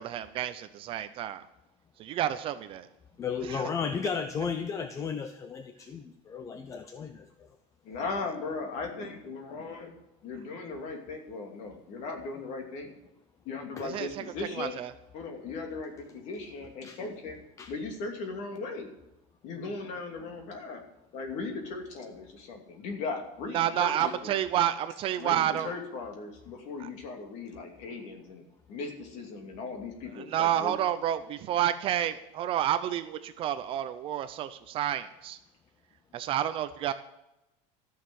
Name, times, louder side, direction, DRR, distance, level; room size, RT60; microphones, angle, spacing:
voice 1, 0.0-1.5 2.1-2.9 3.4-3.6 13.8-14.2 14.6-14.9 23.5-25.7 26.8-26.9 30.1-35.4 36.1-36.9, right 11 dB, 35° right, 11 dB, 0.6 m, -30 dB
voice 2, 3.2-7.3 16.8-17.0 17.6-17.7 24.0-24.1, left 6 dB, 20° left, 8 dB, 0.6 m, -34 dB
voice 3, 7.8-9.9 10.2-12.9 13.5-14.7 15.1-17.4 17.7-18.9 19.4-20.8 21.1-24.4 25.2-30.7, left 3 dB, 45° left, 3 dB, 2.7 m, -38 dB
14.0 x 6.6 x 9.3 m, 0.90 s
cardioid pair, 175°, 17 cm